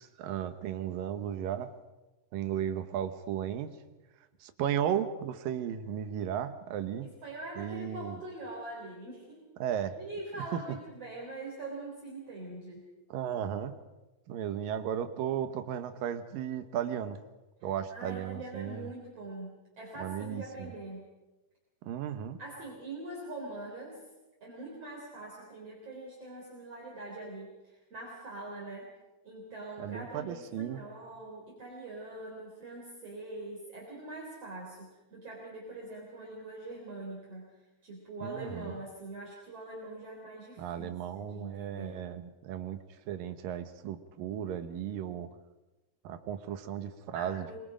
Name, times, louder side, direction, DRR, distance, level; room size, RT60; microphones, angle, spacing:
voice 1, 0.0-1.7 2.3-3.8 4.4-7.1 7.6-8.2 9.6-10.0 10.5-10.6 13.1-13.8 14.3-17.2 17.6-18.9 20.0-20.7 21.9-22.4 29.8-30.8 38.2-38.8 40.6-42.8 43.1-45.3 46.0-47.6, right 9 dB, 75° right, 10 dB, 2.8 m, -35 dB
voice 2, 7.0-9.5 10.0-12.8 17.9-21.0 22.4-24.0 24.4-28.9 29.2-37.4 37.8-42.0 47.1-47.6, right 2 dB, 45° right, -2 dB, 4.8 m, -43 dB
26.0 x 23.5 x 5.1 m, 1.1 s
omnidirectional pair, 4.2 m